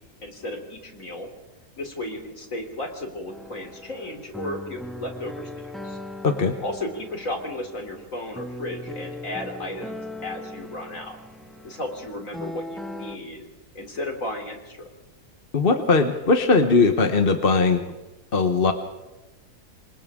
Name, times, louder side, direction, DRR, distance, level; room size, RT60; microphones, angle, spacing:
voice 1, 0.2-1.3 1.8-6.0 6.6-11.2 11.6-13.5 13.8-14.9, left 1 dB, 55° left, 3 dB, 3.8 m, -34 dB
sound 1, 3.3-13.2, left 1 dB, ahead, 1.8 m, -39 dB
voice 2, 6.2-6.5 15.5-17.8 18.3-18.7, left 4 dB, 40° left, 6 dB, 1.2 m, -19 dB
28.5 x 25.5 x 3.7 m, 1.1 s
omnidirectional pair, 1.6 m